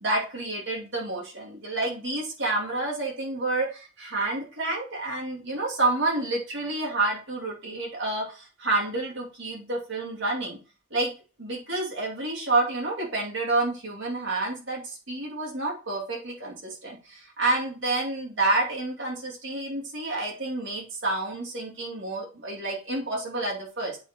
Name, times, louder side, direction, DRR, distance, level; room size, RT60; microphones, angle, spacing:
voice 1, 0.0-10.6 10.9-11.1 11.4-24.0, right 2 dB, 65° right, -1 dB, 2.3 m, -29 dB
8.4 x 4.3 x 3.6 m, 0.35 s
head